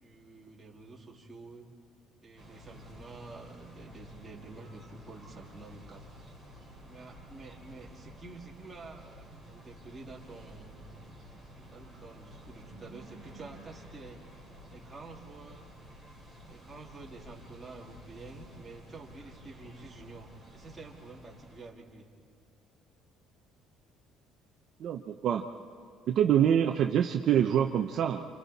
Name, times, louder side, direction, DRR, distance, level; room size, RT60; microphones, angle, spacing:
voice 1, 0.0-1.7 2.2-6.1 6.8-10.9 11.5-14.2 14.7-15.7 16.5-22.1, right 3 dB, 10° right, -3 dB, 2.5 m, -49 dB
sound 1, 2.4-21.7, equal, 20° left, 3.5 m, -51 dB
voice 2, 24.8-25.5 26.1-28.3, right 9 dB, 50° right, 3 dB, 0.7 m, -25 dB
29.5 x 28.0 x 4.2 m, 2.1 s
cardioid pair, 160°, 0 cm